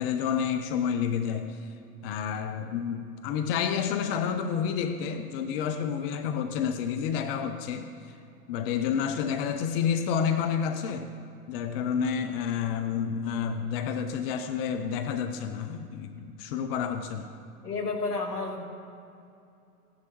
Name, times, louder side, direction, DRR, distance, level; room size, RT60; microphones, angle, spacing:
voice 1, 0.0-1.7 2.0-8.2 8.5-11.1 11.5-17.3, left 7 dB, 40° left, 8 dB, 0.6 m, -29 dB
voice 2, 17.6-18.6, left 3 dB, 80° left, 3 dB, 1.6 m, -31 dB
16.0 x 10.5 x 3.0 m, 2.6 s
figure-of-eight pair, 100°, 46 cm